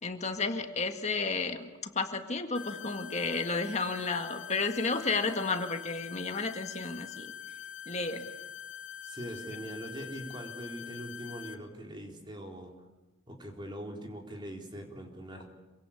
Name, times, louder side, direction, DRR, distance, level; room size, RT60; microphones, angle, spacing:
voice 1, 0.0-7.3 7.9-8.3, left 3 dB, 35° left, 5 dB, 1.9 m, -32 dB
sound 1, 2.5-11.5, left 9 dB, 85° left, 1.8 m, -44 dB
voice 2, 9.0-12.7 13.3-15.5, equal, 25° right, 1 dB, 4.0 m, -42 dB
27.5 x 25.0 x 8.6 m, 1.1 s
head